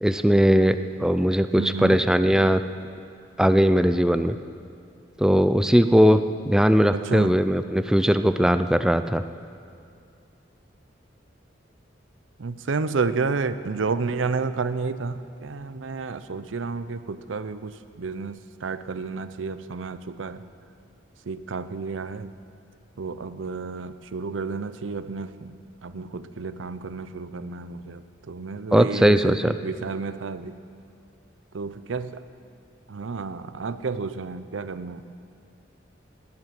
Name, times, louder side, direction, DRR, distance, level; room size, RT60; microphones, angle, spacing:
voice 1, 0.0-2.6 3.4-4.4 5.2-6.2 6.5-9.2 28.7-29.5, equal, 5° right, 10 dB, 0.3 m, -19 dB
voice 2, 1.6-2.0 6.9-7.4 12.4-20.4 21.3-22.3 23.0-25.5 25.8-30.6 31.5-32.2 32.9-35.0, right 4 dB, 90° right, 13 dB, 0.6 m, -31 dB
18.5 x 9.8 x 6.0 m, 2.4 s
head